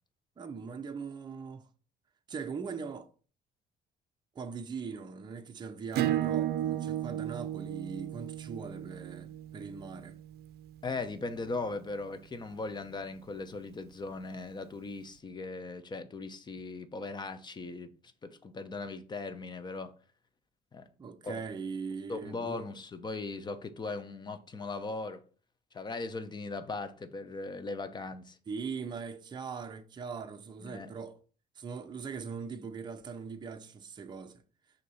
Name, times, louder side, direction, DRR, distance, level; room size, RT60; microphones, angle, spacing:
voice 1, 0.4-1.7 2.3-3.1 4.3-10.2 21.0-22.7 28.5-31.2 31.6-34.4, right 5 dB, 25° right, 0.6 m, -41 dB
Acoustic guitar / Strum, 5.9-11.2, right 12 dB, 70° right, 0.5 m, -34 dB
voice 2, 10.8-17.9 18.2-19.9 20.7-20.9 21.2-21.4 22.1-25.2 25.7-28.4 30.6-30.9, left 3 dB, 25° left, 0.8 m, -38 dB
6.5 x 2.9 x 5.6 m
cardioid pair, 110°, 17 cm